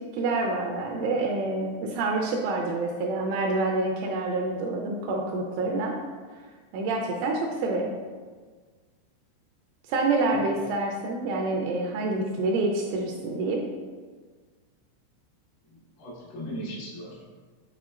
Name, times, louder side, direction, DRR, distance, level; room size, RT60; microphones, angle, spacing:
voice 1, 0.2-6.0 6.7-7.9 9.9-13.6, right 2 dB, 80° right, 0 dB, 2.8 m, -27 dB
voice 2, 10.2-10.6 15.7-17.3, right 1 dB, 85° left, -7 dB, 4.5 m, -38 dB
10.5 x 4.4 x 2.4 m, 1.5 s
omnidirectional pair, 6.0 m